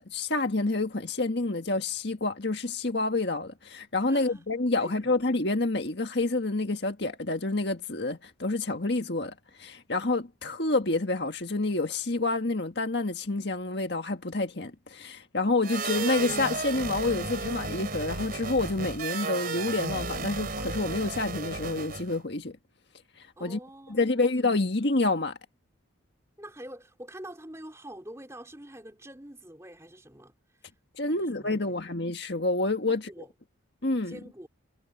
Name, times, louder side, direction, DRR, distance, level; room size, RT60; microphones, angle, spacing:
voice 1, 0.0-22.6 23.2-23.6 23.9-25.4 31.0-33.2 33.8-34.2, left 2 dB, 55° left, 1.8 m, -28 dB
voice 2, 4.1-4.4 4.8-5.1 23.4-24.3 26.4-30.7 31.0-31.7 33.0-33.3 34.0-34.5, right 1 dB, 15° right, 3.6 m, -46 dB
sound 1, 15.6-22.2, right 4 dB, 45° right, 3.7 m, -34 dB
head